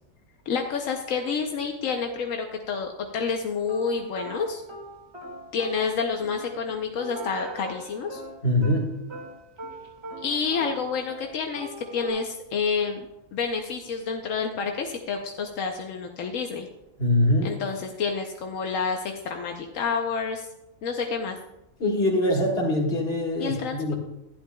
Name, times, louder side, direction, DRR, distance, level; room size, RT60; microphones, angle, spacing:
voice 1, 0.5-4.6 5.5-8.2 10.2-16.7 17.4-20.5 20.8-21.4 23.4-23.8, left 5 dB, 85° left, 3 dB, 1.1 m, -29 dB
sound 1, 3.7-11.3 11.6-12.1, right 1 dB, 20° right, 1.5 m, -41 dB
voice 2, 8.4-9.0 17.0-17.6 21.8-23.9, left 1 dB, 50° left, -1 dB, 1.9 m, -23 dB
11.5 x 10.5 x 2.3 m, 0.91 s
omnidirectional pair, 1.3 m